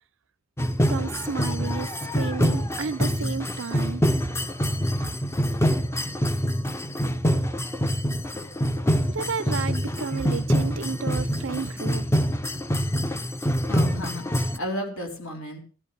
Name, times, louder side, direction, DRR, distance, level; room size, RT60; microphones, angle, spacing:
sound 1, 0.6-14.6, equal, 10° left, 0.5 m, -25 dB
voice 1, 0.9-4.0 9.1-12.1, right 5 dB, 65° right, 14 dB, 0.5 m, -32 dB
voice 2, 13.7-15.6, left 1 dB, 85° left, 1 dB, 3.8 m, -33 dB
15.5 x 12.0 x 3.4 m, 0.38 s
head